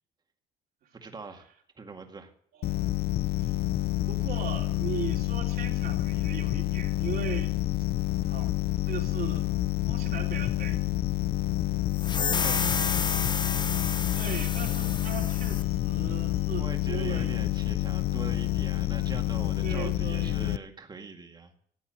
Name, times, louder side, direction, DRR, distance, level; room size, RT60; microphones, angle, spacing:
voice 1, 0.9-1.5 1.8-2.3 12.4-13.1 16.6-21.6, right 4 dB, 25° right, 4 dB, 2.0 m, -42 dB
voice 2, 2.5-2.8 3.4-3.5 4.1-7.5 8.3-8.5 8.9-9.5 9.9-10.8 14.1-17.4 19.6-20.5, right 8 dB, 60° right, 1 dB, 3.2 m, -38 dB
sound 1, 2.6-20.6, left 15 dB, 70° left, 0.6 m, -28 dB
sound 2, 12.0-15.7, left 5 dB, 25° left, 0.7 m, -31 dB
13.5 x 8.4 x 7.6 m, 0.62 s
cardioid pair, 110°, 17 cm